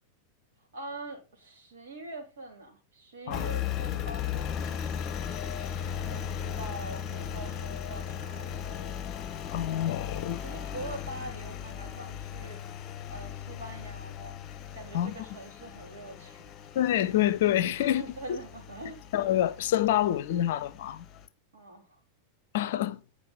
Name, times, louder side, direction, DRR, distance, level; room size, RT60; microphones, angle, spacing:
voice 1, 0.7-5.1 6.1-8.8 10.4-12.6 13.1-14.4 14.7-16.5 17.7-19.0 21.5-22.0, right 2 dB, 60° right, 3.5 m, -43 dB
Engine, 3.3-21.3, left 9 dB, 30° left, 1.0 m, -37 dB
voice 2, 9.5-10.4 14.9-15.1 16.7-18.0 18.3-18.4 19.1-21.1 22.5-23.0, left 12 dB, 55° left, 0.6 m, -27 dB
9.4 x 5.0 x 5.4 m
figure-of-eight pair, 90°, 0 cm